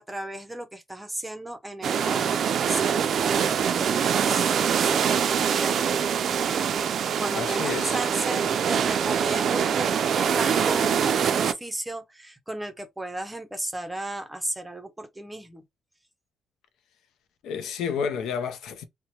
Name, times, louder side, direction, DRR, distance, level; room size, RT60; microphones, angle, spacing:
voice 1, 0.0-5.9 7.2-15.6, right 1 dB, 10° right, 0.6 m, -35 dB
sound 1, 1.8-11.5, right 7 dB, 60° right, 0.3 m, -24 dB
voice 2, 7.3-8.0 17.4-18.8, left 6 dB, 80° left, 0.5 m, -30 dB
2.8 x 2.1 x 2.7 m
cardioid pair, 90°, 0 cm